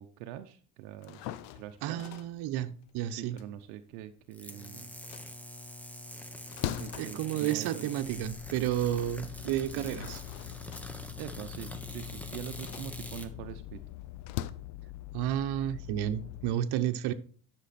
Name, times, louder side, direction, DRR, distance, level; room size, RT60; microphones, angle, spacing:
voice 1, 0.0-2.0 3.2-4.9 6.8-7.9 11.2-13.8, right 12 dB, 85° right, 0.8 m, -44 dB
sound 1, 0.9-4.5 4.9-8.4 8.8-8.9 9.6-14.5, left 12 dB, 80° left, 0.8 m, -42 dB
voice 2, 1.8-3.4 7.0-10.2 15.1-17.1, right 11 dB, 65° right, 1.1 m, -31 dB
sound 2, 4.3-13.3, left 1 dB, 5° left, 1.2 m, -44 dB
sound 3, 8.0-16.5, left 16 dB, 45° left, 0.5 m, -45 dB
11.5 x 6.4 x 4.2 m
supercardioid pair, 100°, 41 cm